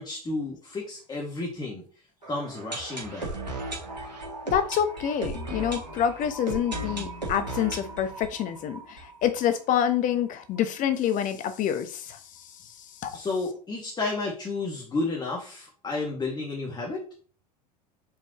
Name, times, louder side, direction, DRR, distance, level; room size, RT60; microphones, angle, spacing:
voice 1, 0.0-1.8 2.3-3.3 13.1-17.0, left 3 dB, 20° left, 2.2 m, -32 dB
sound 1, 2.2-10.0 10.3-10.4 10.5-10.6 11.2-11.3, right 2 dB, 90° right, 2.0 m, -36 dB
voice 2, 4.5-12.2 13.0-13.2, left 9 dB, 40° left, 1.0 m, -27 dB
6.7 x 4.9 x 3.1 m
figure-of-eight pair, 80°, 21 cm